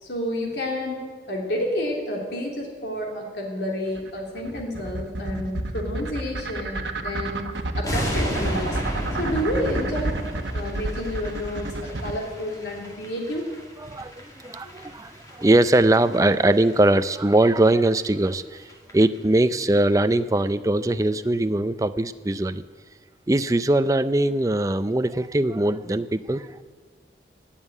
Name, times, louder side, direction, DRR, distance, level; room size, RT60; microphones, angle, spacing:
voice 1, 0.0-7.4 7.8-8.8 9.2-10.1 10.5-13.4, left 1 dB, 70° left, -1 dB, 3.0 m, -30 dB
sound 1, 4.0-12.2, right 2 dB, 85° right, 1.1 m, -29 dB
sound 2, 7.8-17.0 17.3-17.5 17.9-18.0 18.2-18.3 18.6-18.9 19.2-19.3, equal, 20° left, 2.1 m, -34 dB
voice 2, 13.8-22.6 23.3-26.6, right 1 dB, 20° right, 11 dB, 0.4 m, -21 dB
17.0 x 7.3 x 9.8 m, 1.5 s
head